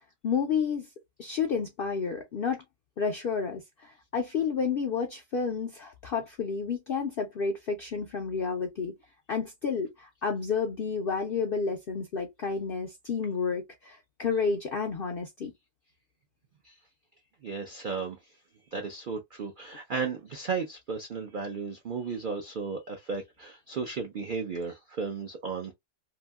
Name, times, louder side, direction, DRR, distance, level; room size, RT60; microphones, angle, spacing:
voice 1, 0.2-0.9 1.2-2.6 3.0-8.9 9.3-15.5, left 5 dB, 70° left, 0.5 m, -30 dB
voice 2, 17.4-18.2 18.7-25.7, right 5 dB, 70° right, 0.5 m, -34 dB
2.9 x 2.7 x 2.2 m
omnidirectional pair, 1.6 m